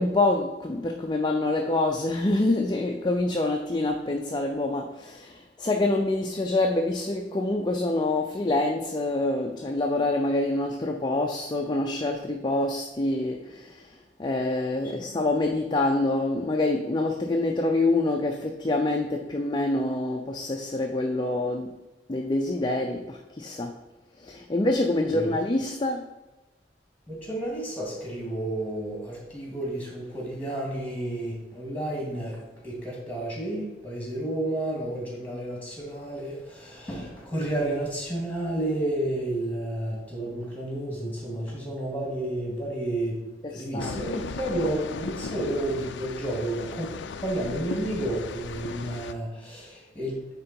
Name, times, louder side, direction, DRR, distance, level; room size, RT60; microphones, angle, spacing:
voice 1, 0.0-21.8 22.1-23.8 24.2-26.1 43.5-43.9, left 2 dB, 25° left, 2 dB, 0.5 m, -26 dB
voice 2, 27.1-43.2 43.5-46.9 47.2-50.2, right 1 dB, 10° left, -2 dB, 2.3 m, -31 dB
sound 1, 43.8-49.1, left 5 dB, 90° left, 0.4 m, -36 dB
9.0 x 3.9 x 4.4 m, 1.0 s
head